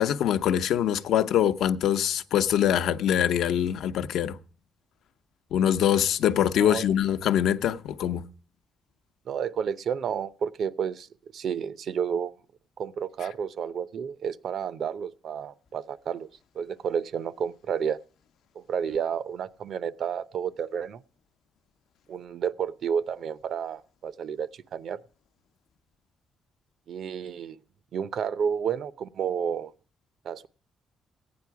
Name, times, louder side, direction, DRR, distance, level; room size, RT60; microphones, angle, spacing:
voice 1, 0.0-4.4 5.5-8.3, left 10 dB, 80° left, 0.7 m, -24 dB
voice 2, 9.3-12.3 12.8-16.3 16.5-18.0 18.6-21.0 22.1-25.0 26.9-27.6 27.9-29.7 30.2-30.5, right 7 dB, 65° right, 0.6 m, -31 dB
15.0 x 9.5 x 4.6 m
cardioid pair, 90°, 0 cm